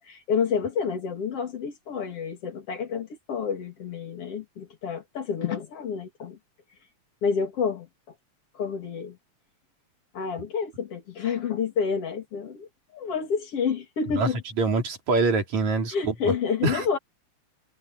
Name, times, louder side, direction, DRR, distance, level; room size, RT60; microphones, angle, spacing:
voice 1, 0.0-6.4 7.2-7.9 8.5-9.2 10.1-14.4 15.9-17.0, left 6 dB, 55° left, 3.4 m, -29 dB
voice 2, 14.6-16.3 16.6-16.8, right 3 dB, 75° right, 5.0 m, -24 dB
omnidirectional pair, 3.3 m